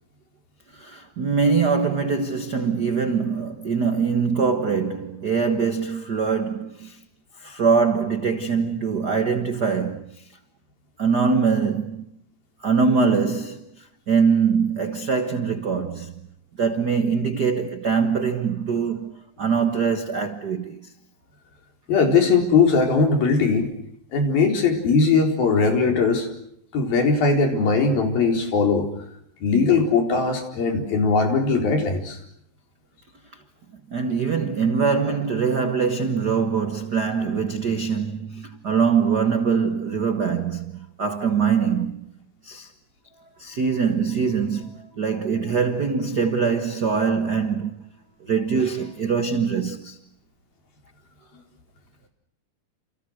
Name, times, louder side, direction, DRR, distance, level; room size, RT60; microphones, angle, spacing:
voice 1, 0.7-7.0 7.4-10.3 11.0-12.1 12.6-16.1 16.6-20.9 33.3-33.4 33.9-42.0 42.4-42.7 43.4-47.9 48.2-50.0, right 5 dB, 75° right, 0.9 m, -23 dB
voice 2, 21.9-23.7 24.1-26.3 26.7-28.9 29.4-32.2, left 4 dB, 80° left, 6.0 m, -20 dB
29.0 x 29.0 x 6.5 m
omnidirectional pair, 4.1 m